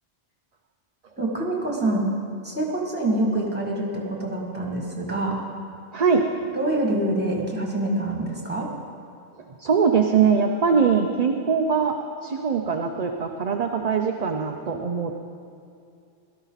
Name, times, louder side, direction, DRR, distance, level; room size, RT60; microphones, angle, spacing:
voice 1, 1.2-2.0 2.4-5.4 6.5-8.7, right 1 dB, 10° right, -2 dB, 2.2 m, -26 dB
voice 2, 5.9-6.2 9.6-12.0 12.2-15.1, right 6 dB, 45° right, 3 dB, 0.6 m, -22 dB
17.0 x 12.5 x 4.1 m, 2.5 s
omnidirectional pair, 1.2 m